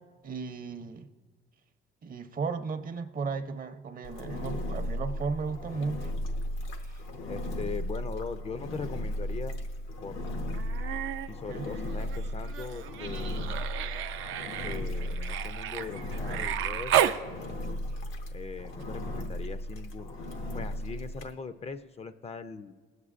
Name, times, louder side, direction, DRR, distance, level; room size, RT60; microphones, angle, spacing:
voice 1, 0.2-1.1 2.0-6.1 6.8-7.0 11.5-11.6, right 4 dB, 45° right, 9 dB, 0.6 m, -35 dB
Engine, 4.0-21.3, left 1 dB, 90° left, 0.9 m, -36 dB
voice 2, 7.3-9.7 10.0-10.2 11.3-13.5 14.6-17.1 18.3-20.1 20.5-22.7, left 5 dB, 30° left, 11 dB, 0.4 m, -40 dB
Human voice, 10.5-11.3 11.6-17.2 18.8-18.9, right 10 dB, 85° right, 0.5 m, -32 dB
20.0 x 8.0 x 2.5 m, 1.5 s
cardioid pair, 90°, 20 cm